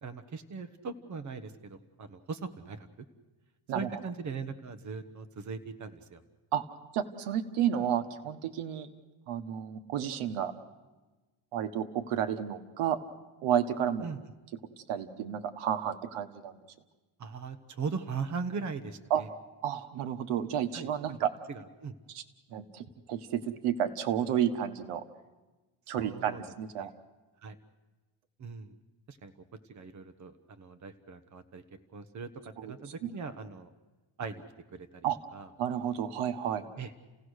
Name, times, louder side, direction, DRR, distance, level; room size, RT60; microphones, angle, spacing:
voice 1, 0.0-2.9 3.7-6.2 14.0-14.2 17.2-19.3 20.7-20.9 21.5-21.9 25.9-26.4 26.8-26.9 27.4-27.6 28.4-28.7 29.1-29.3 29.7-31.6 31.9-33.7 34.2-34.4 34.7-35.1 35.3-35.5 36.8-36.9, right 5 dB, 35° right, 9 dB, 1.2 m, -39 dB
voice 2, 6.9-8.9 9.3-10.5 11.5-13.0 13.4-14.1 14.9-16.6 19.1-19.2 19.6-21.3 22.1-22.2 22.5-25.0 25.9-26.9 32.6-32.7 33.0-33.1 35.0-35.2 35.6-36.6, right 9 dB, 90° right, 10 dB, 1.4 m, -31 dB
30.0 x 17.0 x 6.5 m, 1.2 s
cardioid pair, 135°, 49 cm